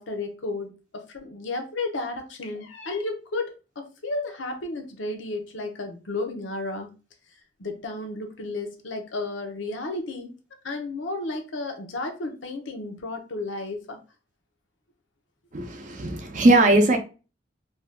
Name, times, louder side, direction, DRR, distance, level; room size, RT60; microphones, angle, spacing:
voice 1, 0.0-6.9 7.6-10.3 10.6-14.0, left 2 dB, 80° left, 0.7 m, -33 dB
voice 2, 15.5-17.0, right 2 dB, 40° right, 0.5 m, -19 dB
2.6 x 2.3 x 3.4 m
head